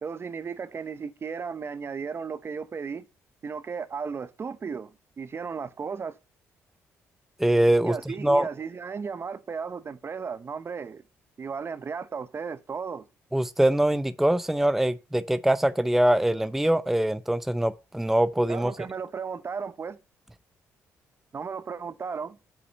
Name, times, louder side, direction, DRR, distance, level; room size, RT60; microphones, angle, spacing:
voice 1, 0.0-3.0 3.4-4.9 5.2-6.2 7.8-11.0 11.4-13.1 18.5-20.0 21.3-22.4, right 5 dB, 40° right, 0.9 m, -35 dB
voice 2, 7.4-7.9 8.2-8.5 13.3-18.7, right 1 dB, 5° right, 0.6 m, -23 dB
7.9 x 6.1 x 5.3 m
supercardioid pair, 60°, 6 cm